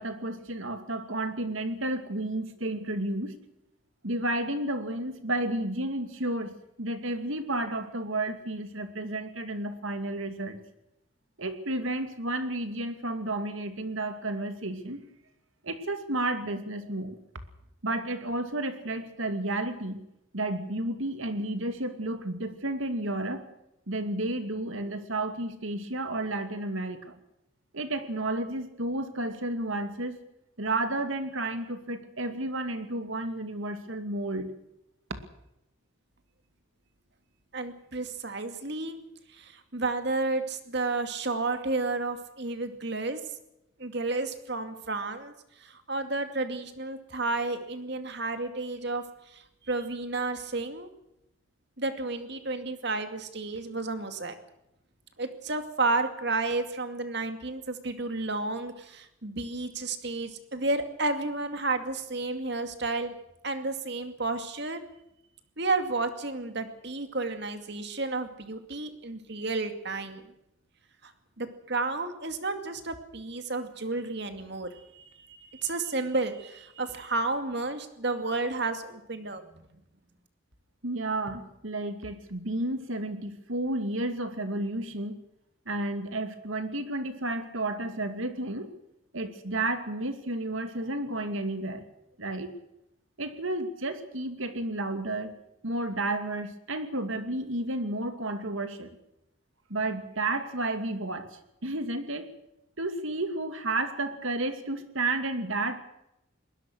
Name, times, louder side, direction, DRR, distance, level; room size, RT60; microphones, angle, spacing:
voice 1, 0.0-3.3 4.0-10.6 11.4-15.0 15.6-17.2 17.8-20.0 20.3-23.5 23.9-27.1 27.7-30.2 30.6-34.5 80.8-85.2 85.7-88.7 89.1-91.8 92.2-92.5 93.2-95.4 95.6-98.9 99.7-102.3 102.8-105.8, right 2 dB, 75° right, 8 dB, 2.5 m, -32 dB
voice 2, 37.5-39.0 39.3-43.2 43.8-45.3 45.6-50.9 51.8-54.4 55.2-63.1 63.4-64.8 65.6-70.2 71.0-71.1 71.4-79.6, right 3 dB, 55° right, 8 dB, 2.3 m, -32 dB
22.5 x 20.0 x 6.4 m, 0.83 s
head